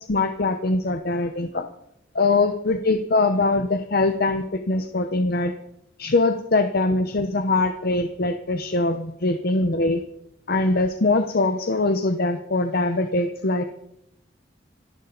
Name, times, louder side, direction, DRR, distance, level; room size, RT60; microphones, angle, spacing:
voice 1, 0.1-1.7 2.1-5.5 6.0-10.0 10.5-13.6, left 2 dB, 55° left, 7 dB, 0.9 m, -22 dB
27.0 x 11.5 x 4.0 m, 0.81 s
head